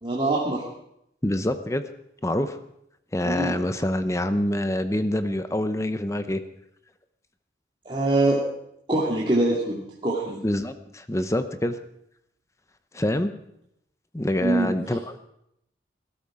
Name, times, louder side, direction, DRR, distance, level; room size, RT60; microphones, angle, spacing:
voice 1, 0.0-0.6 3.2-3.6 7.9-8.4 8.9-10.4 14.4-14.7, right 2 dB, 30° right, -5 dB, 2.4 m, -23 dB
voice 2, 1.2-1.8 2.2-2.6 3.1-6.4 10.4-11.8 12.9-13.3 14.1-15.2, left 1 dB, 15° left, 10 dB, 0.7 m, -26 dB
19.5 x 12.5 x 4.9 m, 0.77 s
head